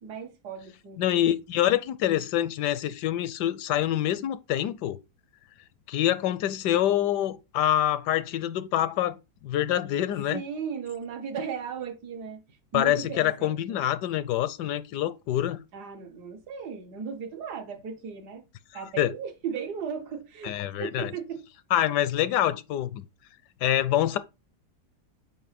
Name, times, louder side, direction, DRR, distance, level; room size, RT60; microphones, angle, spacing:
voice 1, 0.0-1.0 10.3-12.4 12.7-13.8 15.7-18.4 18.7-21.4, right 6 dB, 70° right, 1.6 m, -36 dB
voice 2, 1.0-5.0 5.9-10.4 12.7-15.6 18.7-19.1 20.4-21.1 21.7-23.1 23.6-24.2, left 12 dB, 80° left, 1.1 m, -26 dB
7.8 x 2.7 x 5.1 m
omnidirectional pair, 1.8 m